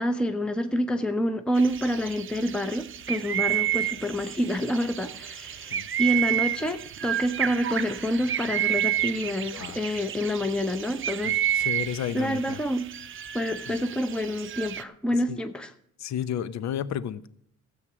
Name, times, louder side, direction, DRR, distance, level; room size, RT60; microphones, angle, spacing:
voice 1, 0.0-11.7 12.1-12.9 13.3-15.7, equal, 5° left, 0.8 m, -28 dB
sound 1, 1.6-14.8, right 12 dB, 45° right, 0.6 m, -30 dB
voice 2, 11.2-12.6 13.7-13.8 15.3-15.4 16.0-17.3, left 9 dB, 65° left, 0.7 m, -32 dB
13.0 x 8.0 x 6.1 m
cardioid pair, 90°, 30 cm